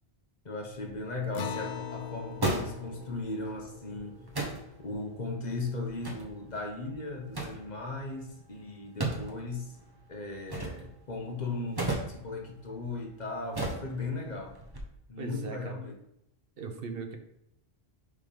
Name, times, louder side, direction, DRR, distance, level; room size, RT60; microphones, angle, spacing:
voice 1, 0.4-4.2 4.8-9.8 10.1-14.6 15.1-15.9, left 3 dB, 45° left, 1 dB, 1.1 m, -37 dB
sound 1, 0.7-14.8, right 2 dB, 25° right, 1.1 m, -39 dB
Acoustic guitar, 1.3-6.2, left 7 dB, 65° left, 0.7 m, -42 dB
voice 2, 15.2-15.8 16.6-17.2, right 5 dB, 65° right, 5 dB, 1.0 m, -39 dB
6.5 x 3.5 x 5.4 m, 0.81 s
omnidirectional pair, 1.1 m